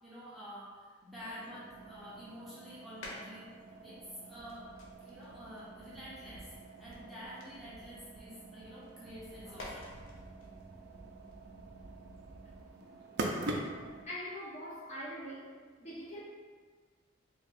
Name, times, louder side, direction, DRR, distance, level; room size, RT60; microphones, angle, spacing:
voice 1, 0.0-3.5 3.8-4.0 4.3-4.7 5.0-9.9, equal, ahead, -11 dB, 0.7 m, -49 dB
sound 1, 1.2-14.0, right 2 dB, 55° right, 0.4 m, -45 dB
sound 2, 3.0-3.7 4.1-8.2 8.5-12.2, left 1 dB, 85° left, 0.7 m, -52 dB
voice 2, 14.1-15.5 15.8-16.2, equal, 35° left, -8 dB, 0.9 m, -42 dB
3.4 x 2.3 x 4.1 m, 1.5 s
head